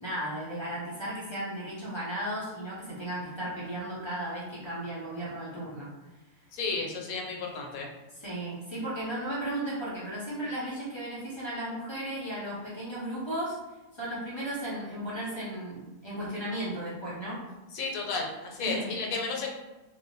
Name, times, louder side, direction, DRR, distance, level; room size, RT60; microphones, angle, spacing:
voice 1, 0.0-5.9 8.2-13.6 14.0-17.4 18.6-19.0, right 1 dB, 40° left, -7 dB, 0.4 m, -35 dB
voice 2, 6.5-7.9 17.7-19.5, left 4 dB, 80° left, 1 dB, 1.0 m, -33 dB
2.6 x 2.0 x 2.9 m, 1.1 s
omnidirectional pair, 1.5 m